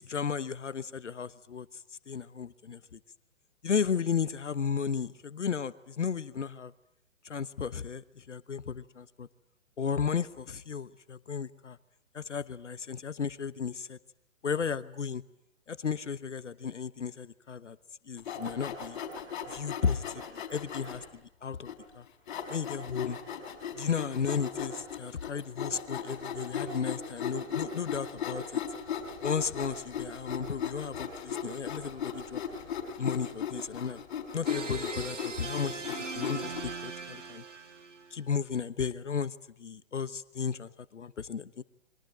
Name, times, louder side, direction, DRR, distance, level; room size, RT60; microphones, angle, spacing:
voice 1, 0.0-3.0 3.6-6.7 7.2-9.3 9.8-11.8 12.1-14.0 14.4-15.2 15.7-17.8 18.1-19.0 19.5-21.0 21.4-22.0 22.5-23.2 23.8-28.6 29.2-32.4 33.0-34.0 34.3-37.4 38.1-41.6, left 6 dB, 65° left, 16 dB, 1.1 m, -34 dB
Sawing, 18.2-21.1 21.7-21.8 22.3-36.6, left 7 dB, 35° left, 5.6 m, -37 dB
sound 1, 34.5-38.2, right 4 dB, 65° right, 2.2 m, -40 dB
29.0 x 23.0 x 9.0 m, 0.75 s
figure-of-eight pair, 125°, 39 cm